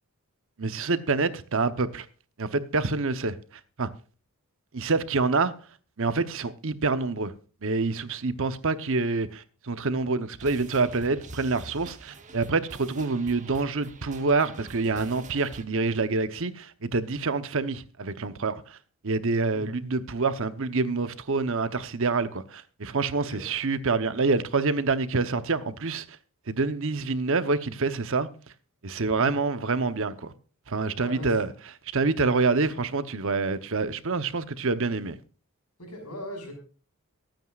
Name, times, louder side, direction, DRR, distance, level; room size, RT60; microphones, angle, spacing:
voice 1, 0.6-2.1 2.4-3.4 3.8-3.9 4.7-5.5 6.0-7.3 7.6-18.8 19.0-26.1 26.5-28.3 28.8-30.3 30.7-31.5 31.9-35.2, right 3 dB, 60° right, 0.9 m, -27 dB
sound 1, 10.4-15.6, right 2 dB, 35° right, 1.1 m, -46 dB
voice 2, 31.0-31.3 35.8-36.5, equal, 85° left, 5.6 m, -39 dB
23.0 x 9.1 x 2.4 m
head